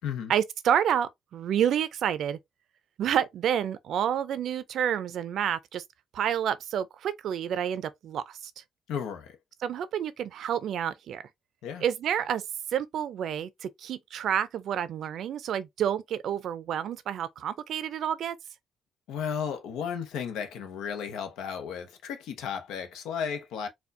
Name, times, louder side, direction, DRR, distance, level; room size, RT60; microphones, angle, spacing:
voice 1, 0.3-2.4 3.0-5.8 6.1-8.5 9.6-11.2 11.8-12.4 12.7-18.4, right 9 dB, 70° right, 0.4 m, -29 dB
voice 2, 8.9-9.4 11.6-11.8 19.1-23.7, left 7 dB, 90° left, 0.8 m, -34 dB
4.3 x 2.3 x 2.6 m
cardioid pair, 90°, 0 cm